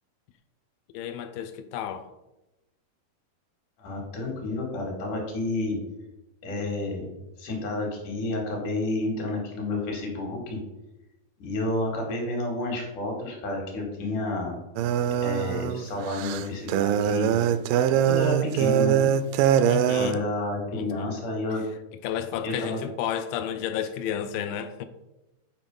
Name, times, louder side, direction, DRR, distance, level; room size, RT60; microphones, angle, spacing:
voice 1, 0.9-2.1 19.7-20.3 20.7-21.1 22.0-24.9, left 9 dB, 80° left, 2.2 m, -32 dB
voice 2, 3.8-5.8 6.4-10.6 11.4-14.5 15.2-17.4 18.0-19.1 20.0-21.6 22.4-22.8, left 2 dB, 60° left, 3.4 m, -30 dB
sound 1, 14.8-20.1, right 9 dB, 85° right, 2.0 m, -23 dB
8.9 x 4.8 x 5.3 m
omnidirectional pair, 4.3 m